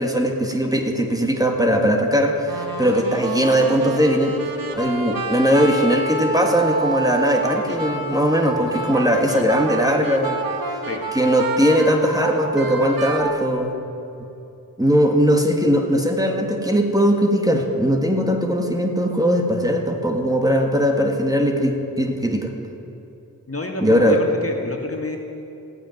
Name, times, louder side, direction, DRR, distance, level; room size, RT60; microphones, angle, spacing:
voice 1, 0.0-4.4 4.8-10.4 11.1-13.7 14.8-22.5 23.8-24.2, equal, 10° right, 2 dB, 1.8 m, -19 dB
sound 1, 2.5-13.4, right 3 dB, 70° right, 1.4 m, -28 dB
voice 2, 23.5-25.2, left 2 dB, 40° left, 1 dB, 1.9 m, -28 dB
15.5 x 9.0 x 9.1 m, 2.7 s
wide cardioid pair, 60°, 36 cm